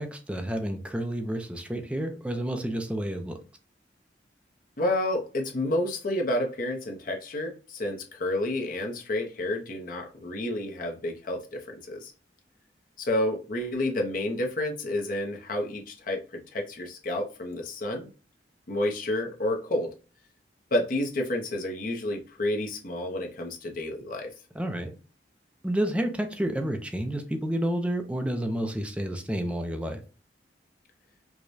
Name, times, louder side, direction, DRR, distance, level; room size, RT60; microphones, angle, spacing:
voice 1, 0.0-3.4 24.5-24.9 25.6-30.0, right 1 dB, 5° right, 0.4 m, -30 dB
voice 2, 4.8-12.1 13.0-18.1 18.7-19.9 20.7-24.3, left 1 dB, 50° left, 0.7 m, -30 dB
4.7 x 2.2 x 2.6 m
head